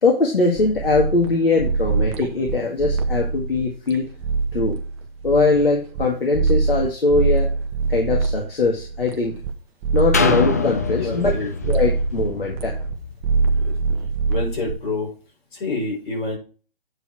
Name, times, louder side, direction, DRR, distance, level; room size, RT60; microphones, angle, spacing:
voice 1, 0.0-4.1 4.5-4.8 5.2-7.5 7.9-9.3 9.9-11.3 11.7-12.8, left 3 dB, 70° left, 1 dB, 2.0 m, -21 dB
sound 1, 0.5-6.0 6.3-9.5 9.8-11.3 11.6-13.0 13.2-14.7, right 4 dB, 25° right, 1.1 m, -24 dB
sound 2, 10.1-13.9 14.4-14.5, left 5 dB, 20° left, 0.3 m, -25 dB
voice 2, 10.9-11.8 13.5-13.7 14.3-15.1 15.5-16.4, left 3 dB, 55° left, -2 dB, 5.3 m, -28 dB
8.9 x 4.8 x 4.7 m, 0.36 s
figure-of-eight pair, 130°, 30 cm